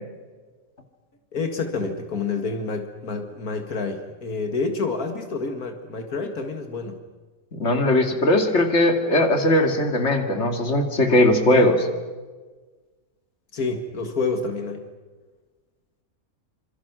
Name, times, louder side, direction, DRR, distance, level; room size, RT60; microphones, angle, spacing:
voice 1, 1.3-7.0 13.5-14.9, left 4 dB, 80° left, 5 dB, 2.3 m, -28 dB
voice 2, 7.5-11.9, left 1 dB, 50° left, 5 dB, 2.9 m, -19 dB
27.5 x 26.5 x 6.2 m, 1.3 s
omnidirectional pair, 1.5 m